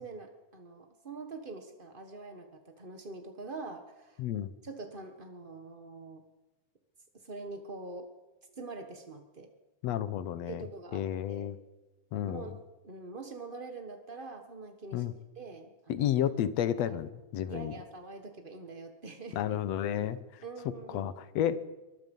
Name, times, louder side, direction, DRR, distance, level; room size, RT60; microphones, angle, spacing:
voice 1, 0.0-4.2 4.6-6.2 7.1-8.1 8.5-9.5 10.5-11.5 12.2-16.1 16.9-17.0 17.5-19.4 20.4-21.2, right 3 dB, 45° right, 6 dB, 0.6 m, -44 dB
voice 2, 4.2-4.5 9.8-10.6 10.9-11.6 12.1-12.5 14.9-15.1 15.9-17.7 19.3-20.2 20.9-21.6, left 10 dB, 70° left, 14 dB, 1.9 m, -31 dB
23.5 x 21.5 x 5.4 m, 1.1 s
omnidirectional pair, 3.5 m